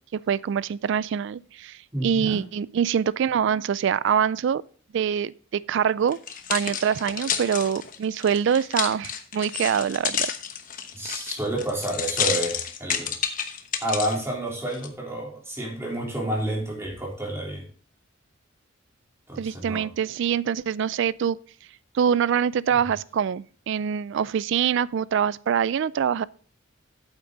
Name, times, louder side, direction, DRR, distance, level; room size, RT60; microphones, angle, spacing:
voice 1, 0.1-4.6 4.9-6.2 6.5-10.3 19.4-21.4 21.9-26.2, right 8 dB, 65° right, 0.3 m, -24 dB
voice 2, 1.9-2.4 10.9-13.1 13.8-17.7 19.3-19.9, right 1 dB, 15° right, 3.5 m, -30 dB
sound 1, 6.1-14.2 14.7-14.9, left 8 dB, 40° left, 1.0 m, -30 dB
8.7 x 8.2 x 3.9 m
head